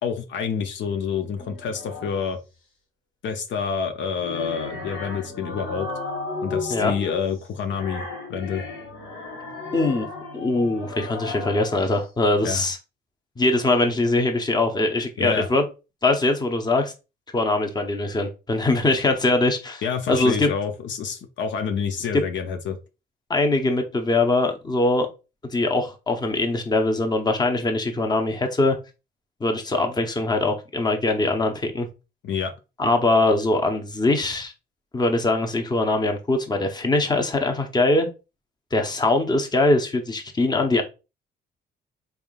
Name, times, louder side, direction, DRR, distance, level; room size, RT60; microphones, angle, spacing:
voice 1, 0.0-2.4 3.2-5.9 6.4-8.6 12.4-12.6 15.2-15.5 19.8-22.8 32.2-32.5, left 6 dB, 70° left, 0.6 m, -28 dB
sound 1, 1.4-2.3 3.9-12.0, left 3 dB, 85° left, 2.1 m, -35 dB
voice 2, 9.7-10.1 10.3-12.8 13.4-15.6 16.0-16.9 17.3-19.8 20.1-20.5 22.1-22.2 23.3-25.1 25.4-28.8 29.4-31.9 32.8-34.5 34.9-38.1 38.7-40.8, left 2 dB, 20° left, 0.8 m, -22 dB
3.6 x 3.5 x 2.4 m
cardioid pair, 90°, 20 cm